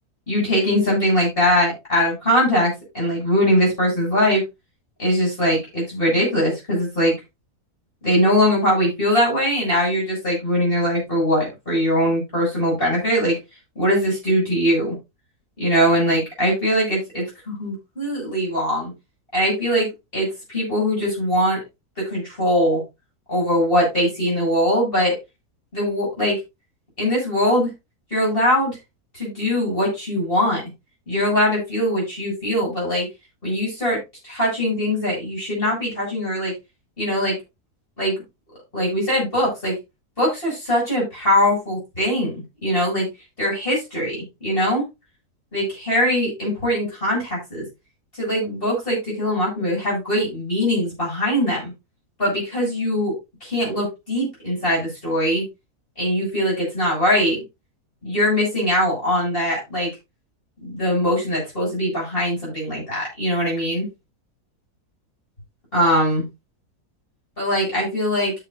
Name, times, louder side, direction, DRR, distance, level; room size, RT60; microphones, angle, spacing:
voice 1, 0.3-4.4 5.0-7.1 8.0-13.3 13.7-15.0 15.6-18.9 19.3-21.6 22.0-22.8 23.3-25.2 25.7-26.4 27.0-27.7 28.1-28.8 29.1-30.6 31.1-33.1 33.4-36.5 37.0-37.4 38.0-38.2 38.7-39.7 40.2-43.1 43.4-44.8 45.5-47.6 48.2-51.7 52.2-55.5 56.0-57.4 58.0-59.9 60.6-63.9 65.7-66.2 67.4-68.3, equal, 35° left, -4 dB, 8.4 m, -21 dB
13.5 x 8.2 x 2.8 m, 0.24 s
omnidirectional pair, 1.6 m